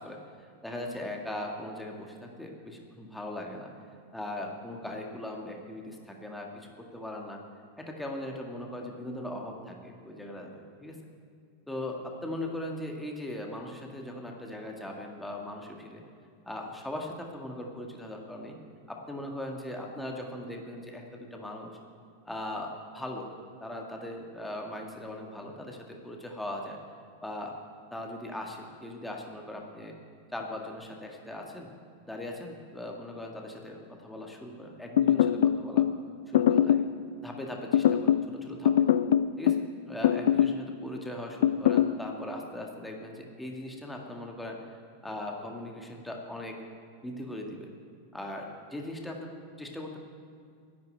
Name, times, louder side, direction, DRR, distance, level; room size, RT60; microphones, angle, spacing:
voice 1, 0.0-3.7 4.1-7.4 7.8-11.0 11.7-16.0 16.5-18.6 18.9-21.8 22.3-23.3 23.6-26.8 27.2-27.6 27.9-30.0 30.3-31.7 32.1-35.9 36.3-36.9 37.2-38.9 39.4-46.6 47.0-47.7 48.1-49.3 49.6-50.0, left 1 dB, 5° left, 1 dB, 1.8 m, -39 dB
sound 1, 35.0-36.0 36.3-36.9 37.7-38.3 38.7-39.7 40.0-40.6 41.4-41.9, left 10 dB, 60° left, 0.5 m, -22 dB
11.0 x 9.3 x 9.0 m, 2.3 s
figure-of-eight pair, 90°, 0 cm